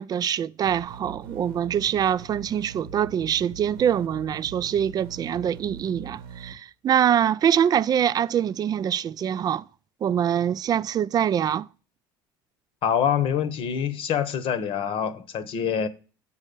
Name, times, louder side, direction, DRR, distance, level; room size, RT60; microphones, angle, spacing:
voice 1, 0.0-9.6 10.0-11.7, right 9 dB, 35° right, 0.4 m, -24 dB
sound 1, 0.6-6.5, right 5 dB, 85° right, 1.0 m, -42 dB
voice 2, 12.8-15.9, left 8 dB, 55° left, 1.0 m, -25 dB
7.1 x 5.5 x 6.7 m
hypercardioid pair, 80°, 11 cm